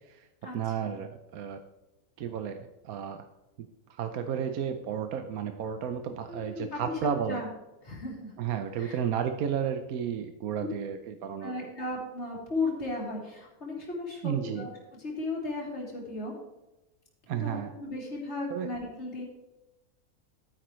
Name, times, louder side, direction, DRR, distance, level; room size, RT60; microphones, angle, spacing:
voice 1, 0.5-1.6 2.2-3.2 3.6-7.4 8.4-11.7 14.2-14.7 17.3-17.7 18.5-18.7, right 8 dB, 70° right, 7 dB, 1.1 m, -33 dB
voice 2, 6.3-7.0 7.3-7.5 7.8-8.3 8.8-9.0 11.4-14.7 15.0-16.3 17.3-19.3, left 2 dB, 45° left, -4 dB, 3.5 m, -35 dB
12.5 x 10.0 x 3.2 m, 1.0 s
omnidirectional pair, 1.7 m